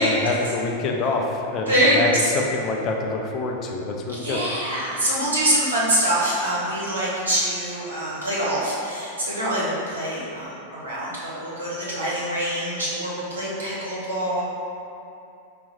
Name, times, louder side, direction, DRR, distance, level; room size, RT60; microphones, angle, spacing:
voice 1, 0.0-4.4, left 3 dB, 35° left, 1 dB, 0.4 m, -26 dB
voice 2, 1.7-2.0 4.2-14.4, right 1 dB, 70° right, -7 dB, 1.2 m, -24 dB
4.2 x 2.3 x 4.0 m, 2.8 s
figure-of-eight pair, 90°, 0 cm